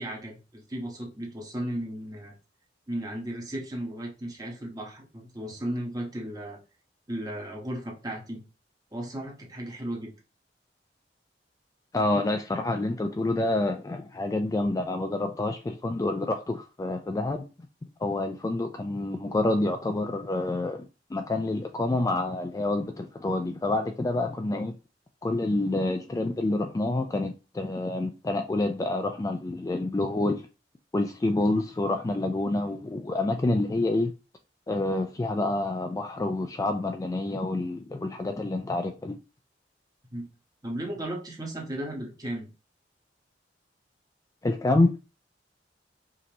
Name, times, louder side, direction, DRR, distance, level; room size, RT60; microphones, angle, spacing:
voice 1, 0.0-2.3 2.9-6.6 7.1-8.4 8.9-10.1 40.1-40.3 40.6-42.5, right 1 dB, 20° right, 1.1 m, -35 dB
voice 2, 11.9-17.4 18.0-24.7 25.2-30.4 30.9-34.1 34.7-39.2 44.4-44.9, left 2 dB, 20° left, 0.3 m, -28 dB
5.1 x 2.9 x 2.9 m
head